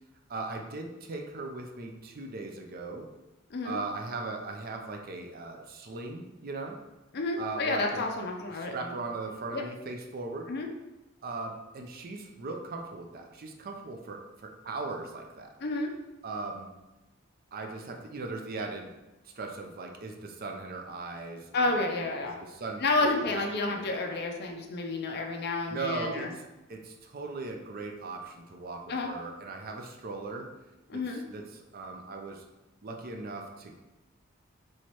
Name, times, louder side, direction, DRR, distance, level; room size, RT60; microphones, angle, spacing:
voice 1, 0.3-3.1 3.6-6.8 7.4-8.0 8.5-10.5 11.2-15.5 16.2-16.7 17.5-18.9 19.2-22.8 23.3-23.9 25.7-26.4 26.7-30.5 30.9-32.4 32.8-33.8, right 3 dB, 50° right, 3 dB, 0.5 m, -39 dB
voice 2, 7.1-8.9 9.5-9.6 10.5-10.7 15.6-15.9 21.5-22.4 22.8-26.3 28.9-29.1 30.9-31.2, left 2 dB, 55° left, 2 dB, 0.5 m, -30 dB
4.5 x 3.1 x 2.9 m, 1.0 s
head